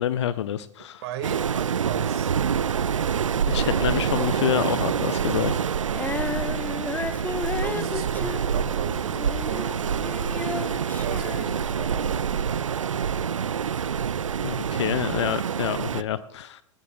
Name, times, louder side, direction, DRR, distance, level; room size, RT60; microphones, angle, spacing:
voice 1, 0.0-1.0 3.5-5.6 14.4-16.6, left 10 dB, 60° left, 15 dB, 0.5 m, -27 dB
voice 2, 1.0-2.4 7.4-10.1 11.0-11.9 14.9-15.0, right 9 dB, 55° right, 9 dB, 1.8 m, -36 dB
Waves surf, 1.2-16.0, right 7 dB, 75° right, 0.4 m, -26 dB
Female singing, 5.9-12.2 12.9-13.0, left 4 dB, 10° left, 0.8 m, -34 dB
20.0 x 15.5 x 2.3 m, 0.74 s
figure-of-eight pair, 90°, 16 cm